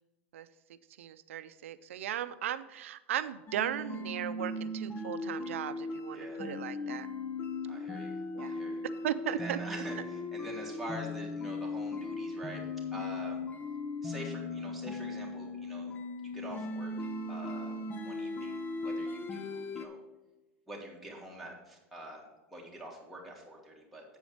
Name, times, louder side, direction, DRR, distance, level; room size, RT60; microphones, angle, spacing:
voice 1, 0.3-7.1 8.3-8.6 9.0-9.6, right 11 dB, 85° right, 13 dB, 0.5 m, -37 dB
sound 1, 3.5-19.9, left 2 dB, 25° left, 0.8 m, -38 dB
voice 2, 7.7-8.9 9.2-12.6 12.9-13.4 14.0-15.9 16.2-17.7 18.0-20.0 20.7-22.2 22.5-24.0, right 1 dB, ahead, -4 dB, 2.6 m, -46 dB
8.0 x 5.0 x 6.5 m, 1.1 s
hypercardioid pair, 105°, 7 cm